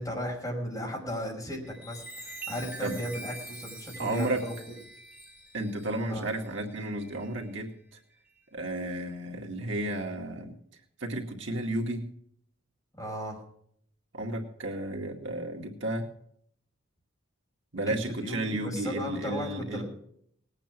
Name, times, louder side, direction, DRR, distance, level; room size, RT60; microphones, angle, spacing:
voice 1, 0.0-4.5 6.1-6.3 13.0-13.4 17.8-19.8, equal, 15° left, -2 dB, 5.4 m, -36 dB
Chime, 1.6-7.5 8.1-8.4, right 2 dB, 10° right, 2.7 m, -45 dB
voice 2, 4.0-4.4 5.5-7.7 8.5-10.5 11.0-12.0 14.1-16.1 17.7-19.8, right 1 dB, 65° right, 1 dB, 2.2 m, -32 dB
19.5 x 9.0 x 6.0 m, 0.67 s
head